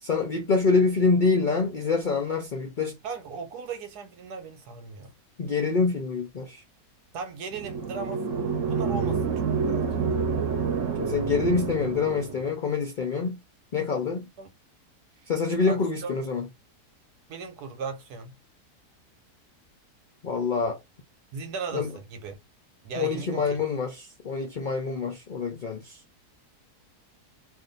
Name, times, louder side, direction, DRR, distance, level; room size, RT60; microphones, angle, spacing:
voice 1, 0.0-3.0 5.4-6.6 11.0-13.4 13.7-14.3 15.3-16.5 20.2-20.8 21.7-21.9 23.0-26.0, left 4 dB, 55° left, 0.5 m, -26 dB
voice 2, 3.0-5.1 7.1-9.9 14.4-14.5 15.7-16.1 17.3-18.3 21.3-22.4 22.8-23.4, right 4 dB, 90° right, 1.4 m, -37 dB
sound 1, 7.5-12.5, right 5 dB, 60° right, 1.0 m, -28 dB
2.6 x 2.6 x 3.9 m
omnidirectional pair, 1.7 m